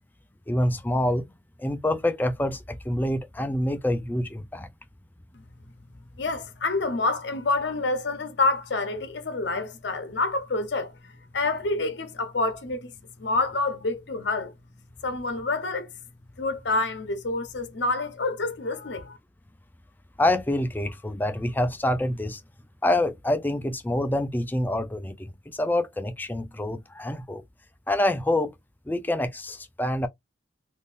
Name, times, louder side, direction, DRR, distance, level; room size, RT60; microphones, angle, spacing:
voice 1, 0.5-1.3 1.6-4.7 20.2-22.4 22.8-27.4 27.9-28.5 28.9-30.1, left 1 dB, 10° left, 0.4 m, -26 dB
voice 2, 6.2-10.9 11.3-12.9 13.2-14.5 15.0-15.9 16.4-19.2, left 3 dB, 60° left, 0.7 m, -27 dB
3.6 x 2.6 x 2.5 m
head